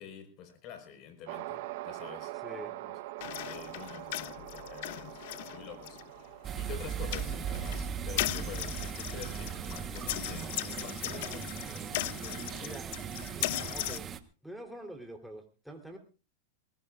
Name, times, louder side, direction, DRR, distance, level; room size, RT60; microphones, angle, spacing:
voice 1, 0.0-2.4 2.7-2.9 3.5-12.7, left 8 dB, 40° left, 7 dB, 4.7 m, -48 dB
sound 1, 1.3-9.8, right 16 dB, 60° right, 1.0 m, -45 dB
voice 2, 2.4-2.7 12.6-12.9 13.7-14.1 14.4-16.0, right 1 dB, ahead, 2 dB, 3.5 m, -45 dB
sound 2, 3.2-14.0, left 17 dB, 60° left, 0.7 m, -38 dB
sound 3, 6.4-14.2, right 8 dB, 25° right, 1.2 m, -38 dB
21.5 x 20.0 x 2.5 m, 0.35 s
hypercardioid pair, 130°, 0 cm